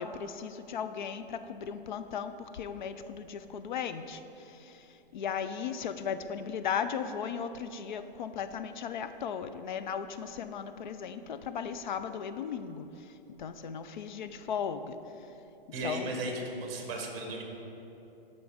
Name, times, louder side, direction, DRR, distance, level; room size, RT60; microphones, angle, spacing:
voice 1, 0.0-2.3 2.6-4.2 5.1-12.9 13.4-14.8 15.8-16.0, left 7 dB, 55° left, 10 dB, 0.5 m, -36 dB
voice 2, 15.7-17.4, right 2 dB, 30° right, 1 dB, 1.7 m, -36 dB
13.5 x 5.3 x 3.5 m, 3.0 s
hypercardioid pair, 155°, 29 cm